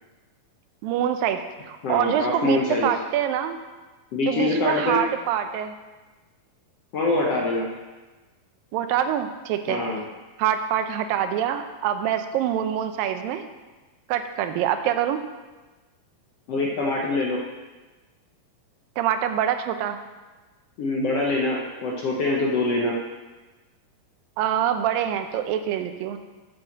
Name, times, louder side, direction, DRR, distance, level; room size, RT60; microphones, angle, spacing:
voice 1, 0.8-3.6 4.3-5.8 8.7-9.8 10.4-13.4 14.1-15.2 19.0-20.0 24.4-26.2, right 10 dB, 85° right, 8 dB, 2.4 m, -25 dB
voice 2, 1.8-2.9 4.1-5.0 6.9-7.7 9.7-10.0 16.5-17.4 20.8-23.0, left 2 dB, 65° left, -2 dB, 1.6 m, -24 dB
7.9 x 7.3 x 7.3 m, 1.2 s
omnidirectional pair, 4.0 m